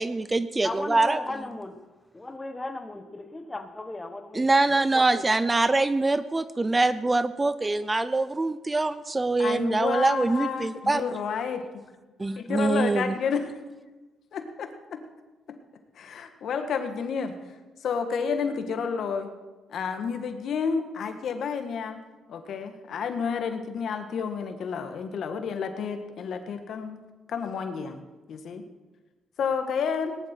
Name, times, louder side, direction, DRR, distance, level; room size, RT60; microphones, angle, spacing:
voice 1, 0.0-1.2 4.3-11.0 12.2-13.1, right 2 dB, 20° right, 14 dB, 0.5 m, -24 dB
voice 2, 0.6-1.8 2.1-4.5 4.7-5.3, left 2 dB, 20° left, 8 dB, 1.3 m, -36 dB
voice 3, 9.4-11.6 12.4-13.6 14.3-15.0 15.5-15.6 15.9-17.4 17.8-19.3 19.7-22.0 22.3-27.0 27.3-28.0 28.3-28.6 29.4-30.2, left 6 dB, 65° left, 7 dB, 1.5 m, -30 dB
18.5 x 11.0 x 4.5 m, 1.2 s
cardioid pair, 90°, 0 cm